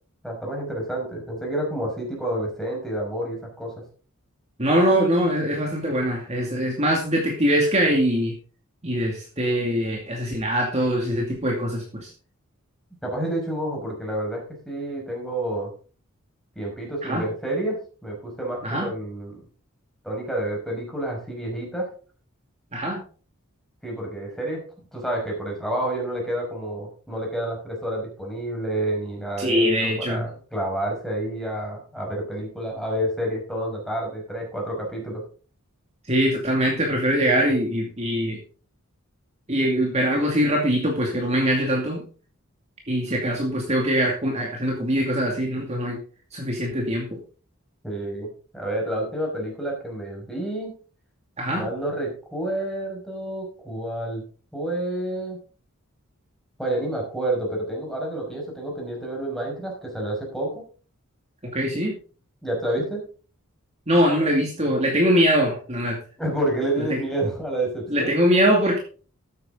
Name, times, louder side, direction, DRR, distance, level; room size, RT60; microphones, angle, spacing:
voice 1, 0.2-3.8 13.0-15.7 16.6-19.4 20.0-21.9 23.8-24.6 24.9-35.2 47.8-50.7 51.5-54.2 54.5-55.4 56.6-60.6 62.4-63.0 66.2-68.1, right 1 dB, ahead, -1 dB, 5.5 m, -29 dB
voice 2, 4.6-8.4 8.8-12.1 17.0-17.2 18.6-18.9 22.7-23.0 29.4-30.3 36.1-38.4 39.5-42.0 42.9-46.0 46.3-47.2 51.4-51.7 61.5-62.0 63.9-66.0 66.9-67.0 67.9-68.8, equal, 30° right, 0 dB, 2.4 m, -22 dB
13.5 x 9.5 x 3.9 m, 0.39 s
head